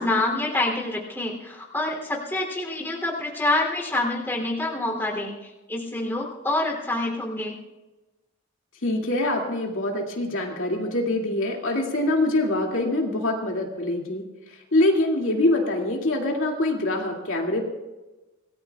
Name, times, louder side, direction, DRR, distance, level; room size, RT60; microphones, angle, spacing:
voice 1, 0.0-7.6, left 2 dB, 10° left, -1 dB, 3.1 m, -27 dB
voice 2, 8.8-17.7, left 1 dB, 70° left, 0 dB, 2.5 m, -24 dB
26.0 x 18.5 x 2.4 m, 1.1 s
head